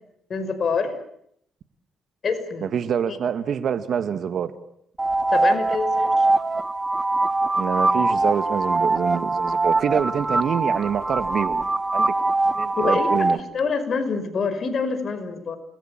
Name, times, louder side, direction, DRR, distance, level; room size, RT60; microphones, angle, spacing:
voice 1, 0.3-1.0 2.2-2.7 3.1-3.2 5.3-6.3 12.8-15.6, left 5 dB, 45° left, 8 dB, 5.5 m, -26 dB
voice 2, 2.6-4.5 7.6-11.6 11.9-12.1 12.5-13.4, right 8 dB, 60° right, 12 dB, 1.9 m, -26 dB
sound 1, 5.0-13.4, right 2 dB, 15° right, 1.2 m, -22 dB
29.0 x 20.5 x 9.1 m, 0.73 s
cardioid pair, 90°, 0 cm